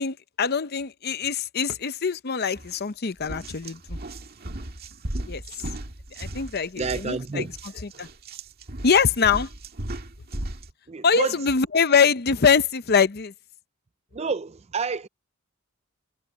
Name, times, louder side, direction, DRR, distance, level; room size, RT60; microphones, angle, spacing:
voice 1, 0.0-4.0 5.3-5.4 6.2-7.5 7.8-8.1 8.8-9.5 11.0-13.3, left 6 dB, 45° left, 0.7 m, -23 dB
sound 1, 2.6-2.8 3.2-10.7, right 1 dB, 45° right, 2.0 m, -36 dB
voice 2, 6.8-7.5 10.9-11.3 14.1-15.1, right 4 dB, 30° right, 0.5 m, -29 dB
head